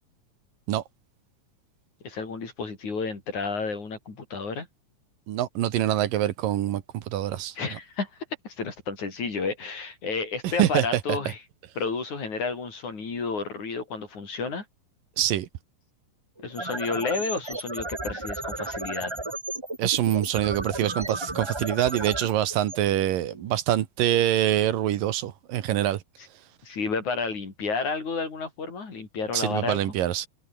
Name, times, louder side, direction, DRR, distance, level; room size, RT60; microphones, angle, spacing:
voice 1, 2.0-4.7 7.6-8.1 8.4-11.4 11.8-14.6 16.4-19.1 26.7-29.8, left 4 dB, 55° left, 6.6 m, -31 dB
voice 2, 5.3-7.5 10.6-11.2 15.2-15.5 19.8-26.0 29.3-30.3, right 12 dB, 80° right, 3.0 m, -25 dB
sound 1, 16.4-23.5, right 2 dB, 10° right, 1.2 m, -34 dB
omnidirectional pair, 4.0 m